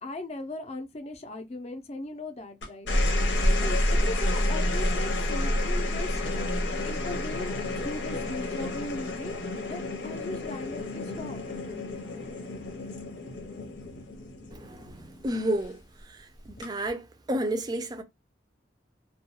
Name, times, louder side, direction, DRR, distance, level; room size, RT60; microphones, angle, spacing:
voice 1, 0.0-2.9 3.6-6.2 6.8-9.4 9.7-11.5, left 2 dB, 35° left, 0.5 m, -38 dB
sound 1, 2.6-15.2 16.4-16.9, left 1 dB, 85° left, 0.9 m, -29 dB
voice 2, 14.5-15.8 16.1-16.2 16.5-18.0, right 1 dB, 20° right, 0.4 m, -31 dB
2.3 x 2.2 x 2.8 m
head